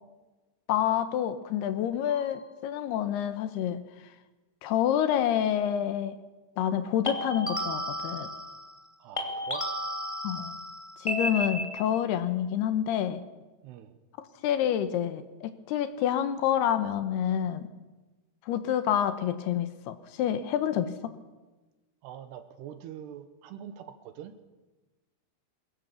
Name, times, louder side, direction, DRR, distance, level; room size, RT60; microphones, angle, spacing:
voice 1, 0.7-3.8 4.6-6.2 6.6-8.3 10.2-10.6 11.0-13.2 14.2-17.7 18.5-21.1, left 10 dB, 75° left, 11 dB, 2.8 m, -28 dB
sound 1, 2.1-2.4 7.1-8.9 9.2-12.0, equal, 10° left, 1.4 m, -33 dB
voice 2, 9.0-9.6 13.6-14.0 22.0-24.3, right 10 dB, 75° right, 10 dB, 3.0 m, -44 dB
22.5 x 17.0 x 7.0 m, 1.2 s
omnidirectional pair, 5.1 m